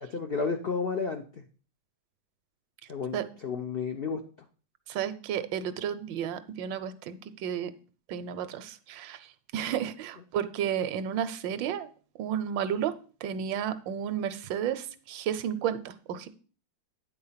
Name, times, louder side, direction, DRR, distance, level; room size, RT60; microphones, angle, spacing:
voice 1, 0.0-1.4 2.9-4.2, left 5 dB, 90° left, 5 dB, 0.5 m, -32 dB
voice 2, 4.9-7.7 8.1-9.3 9.5-11.9 12.2-12.9 13.2-16.3, right 9 dB, 80° right, 12 dB, 1.4 m, -32 dB
9.2 x 4.2 x 5.6 m, 0.39 s
omnidirectional pair, 2.0 m